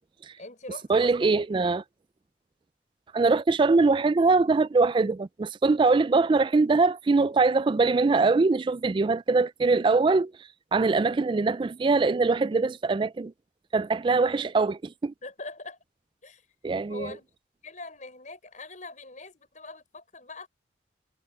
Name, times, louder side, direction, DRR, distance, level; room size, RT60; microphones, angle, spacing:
voice 1, 0.4-1.5 14.4-14.5 15.2-15.8 16.2-16.5 16.9-17.3 17.6-20.5, left 2 dB, 45° left, 6.3 m, -42 dB
voice 2, 0.9-1.8 3.1-10.3 10.7-13.3 13.7-15.1 16.6-17.1, right 3 dB, 25° right, 0.3 m, -22 dB
head